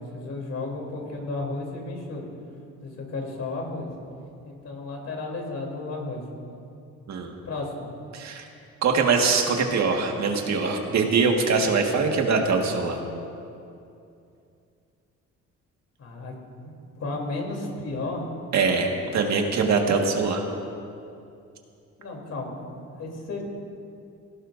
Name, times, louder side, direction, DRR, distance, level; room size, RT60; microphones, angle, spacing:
voice 1, 0.0-2.3 2.8-3.9 4.4-6.2 7.4-7.9 16.0-16.3 16.6-18.3 22.0-23.4, left 2 dB, 55° left, 0 dB, 3.5 m, -33 dB
voice 2, 8.1-8.4 8.8-13.0 18.5-20.4, right 4 dB, 65° right, 2 dB, 1.8 m, -23 dB
18.0 x 17.0 x 2.7 m, 2.6 s
cardioid pair, 90°, 30 cm